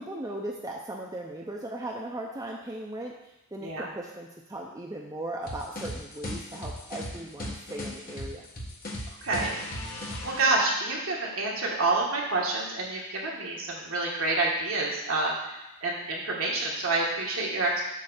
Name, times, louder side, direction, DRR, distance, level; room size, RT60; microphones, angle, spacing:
voice 1, 0.0-8.5, right 1 dB, 15° right, -1 dB, 0.5 m, -38 dB
sound 1, 5.5-10.4, left 1 dB, 40° left, 1.4 m, -37 dB
voice 2, 9.2-9.6 10.2-17.8, right 2 dB, 65° right, -3 dB, 1.8 m, -28 dB
8.4 x 3.3 x 6.5 m, 0.94 s
head